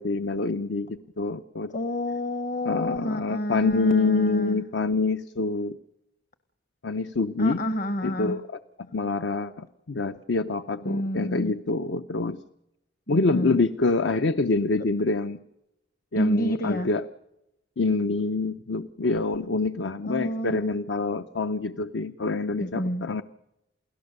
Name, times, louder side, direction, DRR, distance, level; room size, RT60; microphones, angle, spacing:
voice 1, 0.0-1.7 2.6-5.8 6.8-7.6 8.0-8.4 8.9-12.4 13.1-15.4 16.1-17.0 17.8-23.2, left 3 dB, 70° left, 11 dB, 0.7 m, -26 dB
voice 2, 1.7-4.6 7.4-8.4 10.8-11.5 13.1-13.6 16.2-16.9 20.0-20.7 22.5-23.0, equal, 50° left, 10 dB, 1.1 m, -29 dB
29.0 x 17.5 x 6.7 m, 0.88 s
head